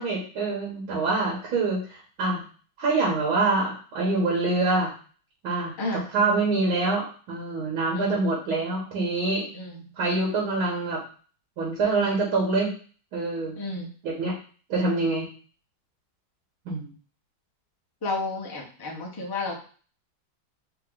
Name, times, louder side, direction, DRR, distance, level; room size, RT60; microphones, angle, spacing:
voice 1, 0.0-2.4 2.8-4.9 5.4-5.7 6.1-9.5 10.0-11.0 11.6-12.7 13.1-13.6 14.0-14.3 14.7-15.3 16.7-16.9, right 3 dB, 85° right, -3 dB, 2.1 m, -25 dB
voice 2, 13.6-13.9 18.0-19.6, left 2 dB, 25° left, -2 dB, 0.5 m, -31 dB
4.1 x 3.0 x 3.9 m, 0.40 s
omnidirectional pair, 2.2 m